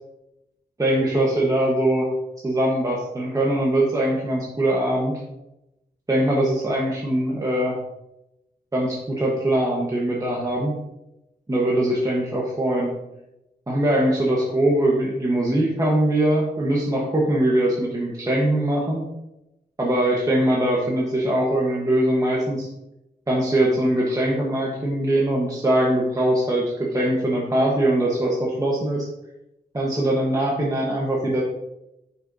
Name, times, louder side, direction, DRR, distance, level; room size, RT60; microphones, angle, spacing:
voice 1, 0.8-2.1 2.4-5.1 6.1-7.8 8.7-10.7 11.5-12.9 13.7-19.0 19.8-22.7 23.3-29.1 29.7-31.4, right 1 dB, 20° right, -4 dB, 1.1 m, -22 dB
9.8 x 5.8 x 2.7 m, 0.91 s
wide cardioid pair, 130°, 17 cm